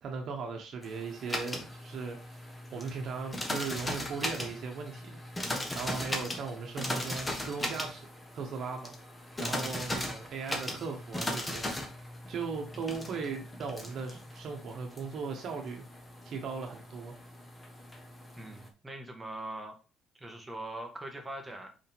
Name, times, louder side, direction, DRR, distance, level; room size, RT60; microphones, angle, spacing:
voice 1, 0.0-2.4 2.7-5.2 5.7-8.1 8.3-8.9 9.4-11.6 12.3-15.8 16.2-17.1, right 5 dB, 55° right, 2 dB, 1.2 m, -38 dB
sound 1, 0.8-18.7, left 1 dB, 15° left, 1.4 m, -38 dB
voice 2, 9.5-9.9 12.0-12.1 18.4-19.7 20.1-21.7, right 1 dB, 10° right, 3 dB, 1.5 m, -42 dB
5.5 x 5.2 x 3.6 m, 0.34 s
cardioid pair, 125°, 0 cm